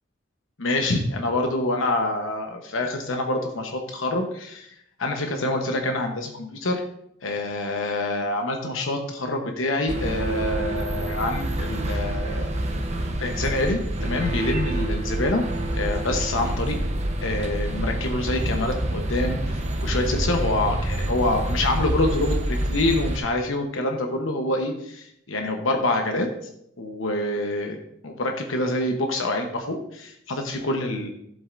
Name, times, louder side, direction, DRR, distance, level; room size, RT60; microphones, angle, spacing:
voice 1, 0.6-4.7 5.0-6.8 7.2-12.5 13.2-15.4 15.7-16.8 17.2-19.4 19.8-26.3 26.8-27.8 28.0-31.1, left 2 dB, 90° left, 3 dB, 1.0 m, -26 dB
sound 1, 9.9-23.2, right 1 dB, 35° right, 0.8 m, -27 dB
11.0 x 7.8 x 2.6 m, 0.73 s
head